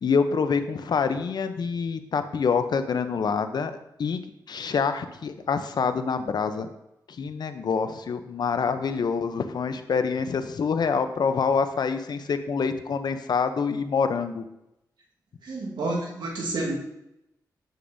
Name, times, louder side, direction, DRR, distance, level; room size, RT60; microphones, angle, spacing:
voice 1, 0.0-3.7 4.0-4.2 4.5-6.7 7.1-14.5, left 5 dB, 70° left, 9 dB, 0.6 m, -26 dB
voice 2, 15.4-16.7, right 2 dB, 85° right, -2 dB, 1.5 m, -29 dB
7.8 x 6.6 x 2.6 m, 0.87 s
cardioid pair, 65°, 7 cm